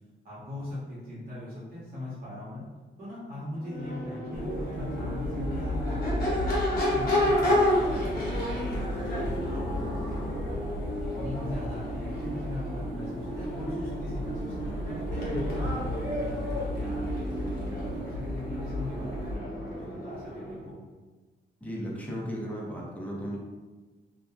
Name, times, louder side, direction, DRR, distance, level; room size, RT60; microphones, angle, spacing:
voice 1, 0.2-2.6 3.0-6.3 6.7-10.7 11.1-14.7 15.1-20.8, left 1 dB, 50° right, -8 dB, 0.9 m, -40 dB
Crowd / Race car auto racing / Accelerating revving vroom, 3.6-20.7, left 1 dB, 55° left, 0.7 m, -32 dB
sound 1, 4.3-19.4, equal, 65° right, 0.5 m, -34 dB
voice 2, 21.6-23.4, equal, 10° left, -4 dB, 0.5 m, -35 dB
2.7 x 2.2 x 2.3 m, 1.3 s
wide cardioid pair, 140°, 19 cm